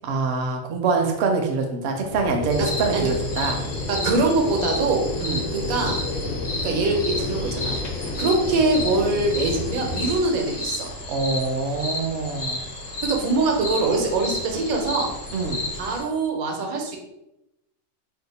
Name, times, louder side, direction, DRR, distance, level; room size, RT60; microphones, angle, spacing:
voice 1, 0.0-3.6 5.2-5.4 11.1-12.6 15.3-15.6, right 4 dB, 65° right, 2 dB, 0.7 m, -25 dB
sound 1, 2.1-10.1, left 2 dB, 80° left, 1.0 m, -31 dB
sound 2, 2.5-16.0, left 2 dB, 55° left, 0.9 m, -32 dB
voice 2, 3.9-5.0 5.5-6.0 6.6-7.8 8.2-10.9 13.0-15.1 15.7-17.0, right 3 dB, 85° right, 2 dB, 1.1 m, -23 dB
2.8 x 2.1 x 3.9 m, 0.89 s
omnidirectional pair, 1.4 m